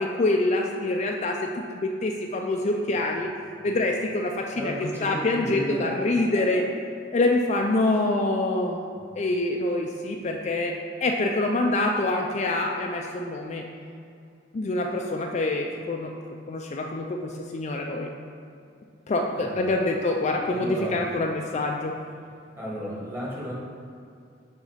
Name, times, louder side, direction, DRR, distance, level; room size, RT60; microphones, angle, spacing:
voice 1, 0.0-3.3 3.6-4.7 5.0-6.6 7.1-8.9 9.2-10.7 11.0-13.6 14.5-16.1 16.5-18.1 19.1-21.9, left 2 dB, 35° left, 1 dB, 0.4 m, -26 dB
voice 2, 4.5-6.6 9.0-9.1 19.3-19.8 20.5-21.0 22.6-23.5, equal, 15° right, -5 dB, 1.3 m, -34 dB
6.0 x 3.8 x 5.6 m, 2.4 s
head